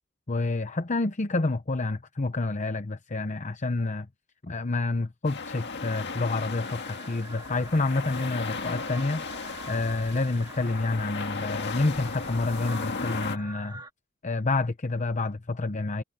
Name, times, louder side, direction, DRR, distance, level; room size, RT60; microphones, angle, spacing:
voice 1, 0.3-4.1 4.4-9.3 9.7-13.8 14.2-16.0, left 3 dB, 35° left, 0.8 m, -28 dB
sound 1, 5.3-13.4, left 4 dB, 50° left, 1.9 m, -36 dB
sound 2, 6.6-13.9, right 3 dB, 20° right, 2.5 m, -46 dB
sound 3, 7.3-12.8, left 1 dB, 90° left, 5.2 m, -54 dB
head